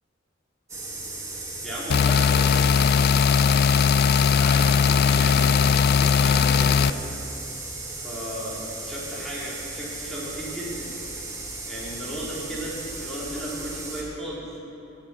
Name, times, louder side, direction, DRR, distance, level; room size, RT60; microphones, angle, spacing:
sound 1, 0.7-14.0, right 2 dB, 15° right, 1.7 m, -36 dB
voice 1, 1.3-7.0 7.9-10.9 11.6-14.5, equal, ahead, -8 dB, 3.7 m, -35 dB
sound 2, 1.9-6.9, left 6 dB, 55° left, 0.3 m, -19 dB
sound 3, 4.3-7.2, right 3 dB, 50° right, 2.9 m, -47 dB
18.0 x 7.5 x 6.3 m, 3.0 s
head